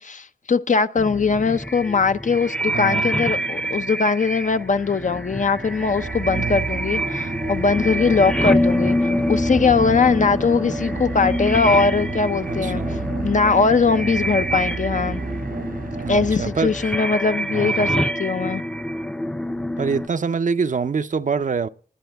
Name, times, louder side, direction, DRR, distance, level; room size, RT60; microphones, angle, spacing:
voice 1, 0.0-12.8 13.2-15.2 16.1-18.6, left 4 dB, 60° left, 0.7 m, -20 dB
sound 1, 1.0-20.1, equal, 5° left, 0.6 m, -26 dB
voice 2, 2.7-3.1 6.3-6.7 12.5-13.1 16.0-16.7 17.5-17.9 19.8-21.7, right 5 dB, 65° right, 0.6 m, -25 dB
sound 2, 5.3-17.2, right 4 dB, 85° right, 1.5 m, -31 dB
19.5 x 10.0 x 3.5 m
cardioid pair, 50°, 14 cm